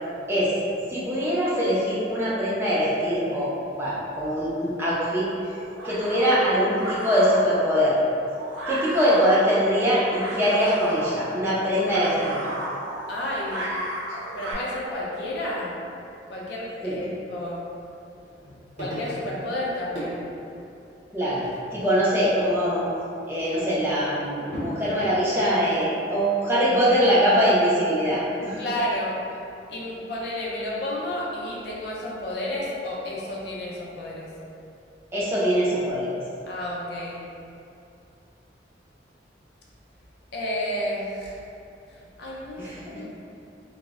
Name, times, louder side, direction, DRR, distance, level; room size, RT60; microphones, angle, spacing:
voice 1, 0.9-3.5 3.8-5.3 5.8-8.0 8.7-12.4 16.8-17.0 21.1-22.9 23.3-28.6 35.1-36.1 42.6-43.0, equal, 15° right, -9 dB, 0.4 m, -23 dB
sound 1, 4.7-14.5, right 1 dB, 80° right, 0.4 m, -35 dB
voice 2, 13.1-13.7 14.3-15.8 16.3-17.6 18.8-20.3 28.6-29.2 29.7-34.3 36.5-37.2 40.3-41.4 41.9-43.1, left 1 dB, 60° left, -5 dB, 0.5 m, -31 dB
sound 2, 18.1-19.7 20.0-22.1 22.5-23.0 23.8-25.4, equal, 40° right, 0.8 m, -38 dB
2.1 x 2.0 x 3.4 m, 2.6 s
head